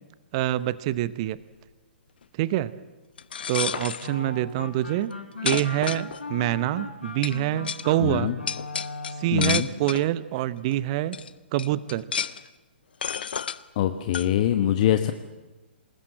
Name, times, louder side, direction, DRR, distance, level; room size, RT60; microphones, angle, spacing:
voice 1, 0.3-1.4 2.4-2.7 3.5-5.1 5.4-8.3 9.2-11.2 11.5-12.1, right 14 dB, 35° right, 17 dB, 0.8 m, -26 dB
sound 1, 3.2-4.1 5.0-5.1 5.5-6.5 7.2-7.4 7.6-7.8 8.5-10.1 10.7-10.8 11.1-11.3 11.6-12.5 13.0-13.6 14.1-14.3, left 7 dB, 55° left, 0.9 m, -30 dB
sound 2, 4.0-9.5, left 3 dB, 70° left, 4.0 m, -38 dB
voice 2, 8.0-8.4 9.3-9.7 13.8-15.1, left 11 dB, 40° left, 8 dB, 1.2 m, -23 dB
28.0 x 20.0 x 7.7 m, 1.2 s
figure-of-eight pair, 120°, 6 cm